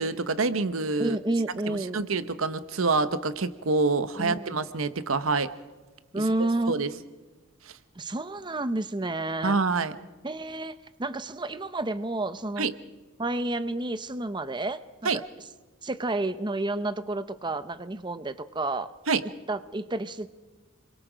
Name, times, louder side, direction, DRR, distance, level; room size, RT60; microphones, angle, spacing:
voice 1, 0.0-1.2 1.7-5.5 6.7-6.9 9.4-9.9 12.6-12.7 15.0-15.2 19.1-19.2, right 4 dB, 90° right, 12 dB, 1.0 m, -26 dB
voice 2, 1.0-2.0 4.2-4.6 6.1-6.8 8.0-9.6 10.2-12.7 13.2-15.2 15.8-18.9 19.5-20.3, right 2 dB, 25° right, 12 dB, 0.8 m, -30 dB
30.0 x 23.0 x 5.1 m, 1.3 s
head